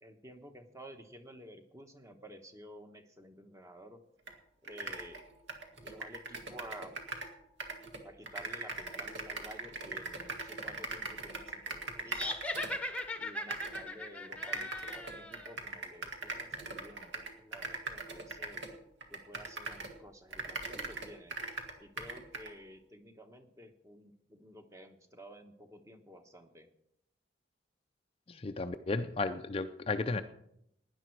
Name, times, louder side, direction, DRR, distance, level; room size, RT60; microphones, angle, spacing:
voice 1, 0.0-4.0 4.6-5.2 5.7-7.0 8.0-12.4 13.2-18.6 19.1-21.4 21.8-26.7, equal, 15° right, 6 dB, 1.1 m, -52 dB
sound 1, 4.3-4.4 4.6-7.3 7.6-13.1 13.5-13.8 14.3-20.0 20.3-22.5, right 3 dB, 70° right, 1.8 m, -41 dB
sound 2, 12.1-15.5, left 1 dB, 5° left, 0.9 m, -39 dB
voice 2, 28.3-30.2, left 3 dB, 30° left, 8 dB, 0.5 m, -34 dB
17.0 x 10.5 x 4.6 m, 0.76 s
head